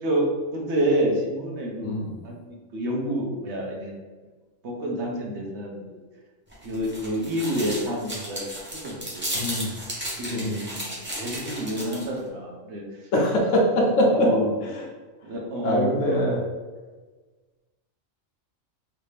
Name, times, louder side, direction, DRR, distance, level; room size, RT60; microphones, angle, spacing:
voice 1, 0.0-2.0 2.2-2.3 2.7-3.9 4.6-6.0 6.6-9.4 10.2-12.8 14.0-14.5 15.2-16.2, right 1 dB, 60° right, -2 dB, 1.0 m, -28 dB
voice 2, 1.8-2.1 9.3-9.7 10.3-10.6 13.1-14.3 15.6-16.4, equal, 65° left, -1 dB, 1.1 m, -22 dB
sound 1, 6.5-12.2, equal, 10° right, 0.6 m, -34 dB
3.3 x 2.7 x 3.2 m, 1.3 s
omnidirectional pair, 1.4 m